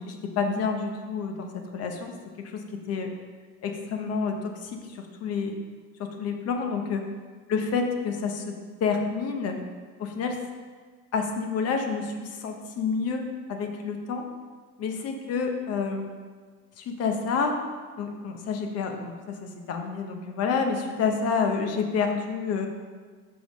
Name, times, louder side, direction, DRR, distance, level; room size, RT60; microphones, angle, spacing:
voice 1, 0.0-2.6 2.9-3.1 3.6-5.5 6.0-7.0 7.5-8.5 8.8-9.6 10.0-10.4 11.1-14.2 14.8-16.1 16.8-17.6 18.0-22.7, left 5 dB, 50° left, 4 dB, 1.0 m, -29 dB
6.0 x 5.3 x 6.2 m, 1.5 s
cardioid pair, 155°, 33 cm